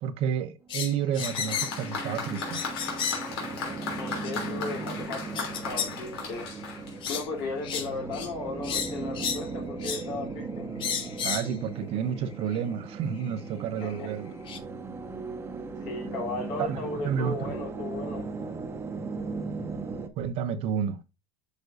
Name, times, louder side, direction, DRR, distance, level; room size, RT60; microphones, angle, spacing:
voice 1, 0.0-2.6 11.2-14.3 16.6-17.5 20.2-21.0, right 8 dB, 50° right, 0.8 m, -30 dB
sound 1, 0.7-1.9 2.4-3.3 4.2-4.3 5.3-5.9 6.3-6.5 7.0-7.3 7.6-7.9 8.1-8.3 8.6-9.5 9.8-10.1 10.8-11.5 12.5-12.6 13.8-13.9 14.5-14.6, left 7 dB, 40° left, 1.1 m, -32 dB
sound 2, 0.7-20.1, right 3 dB, 20° right, 0.9 m, -38 dB
Applause, 1.2-7.6, left 5 dB, 90° left, 2.9 m, -37 dB
voice 2, 4.0-6.5 7.1-10.6 13.8-14.1 15.8-18.2, left 3 dB, 65° left, 3.2 m, -36 dB
8.2 x 5.3 x 2.6 m
supercardioid pair, 125°, 13 cm